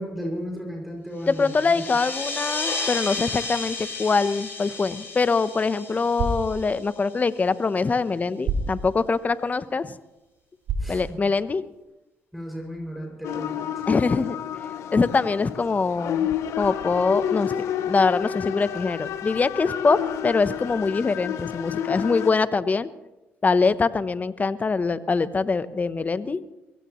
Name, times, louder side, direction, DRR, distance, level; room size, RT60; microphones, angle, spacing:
voice 1, 0.0-1.8 10.8-11.2 12.3-13.8, equal, ahead, 0 dB, 6.1 m, -34 dB
sound 1, 1.2-7.3, left 3 dB, 50° left, 7.3 m, -33 dB
voice 2, 1.3-10.0 10.9-11.6 13.9-14.4 14.9-16.3 16.6-17.5 17.8-22.9 23.4-26.4, left 4 dB, 35° left, 15 dB, 0.9 m, -23 dB
sound 2, 4.9-11.8, right 3 dB, 75° right, 2.8 m, -34 dB
sound 3, 13.2-22.3, left 9 dB, 75° left, 0.8 m, -30 dB
24.0 x 16.5 x 3.1 m, 1.0 s
supercardioid pair, 65°, 5 cm